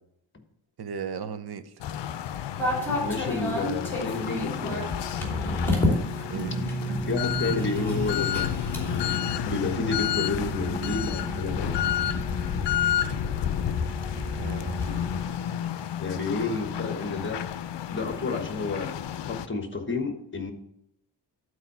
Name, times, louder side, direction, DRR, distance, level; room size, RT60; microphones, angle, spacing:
voice 1, 0.8-1.6 6.3-6.5 14.2-15.0 15.4-15.6, right 7 dB, 55° right, 11 dB, 0.8 m, -37 dB
sound 1, 1.8-19.5, left 11 dB, 70° left, 0.6 m, -31 dB
sound 2, 2.6-15.2, left 1 dB, 5° left, 3.0 m, -32 dB
voice 2, 2.9-4.9 7.1-11.8 16.0-17.4 17.9-20.5, left 3 dB, 25° left, 5 dB, 1.3 m, -31 dB
sound 3, 6.3-14.7, right 1 dB, 85° right, 2.0 m, -36 dB
11.5 x 4.8 x 5.6 m, 0.76 s
wide cardioid pair, 130°, 44 cm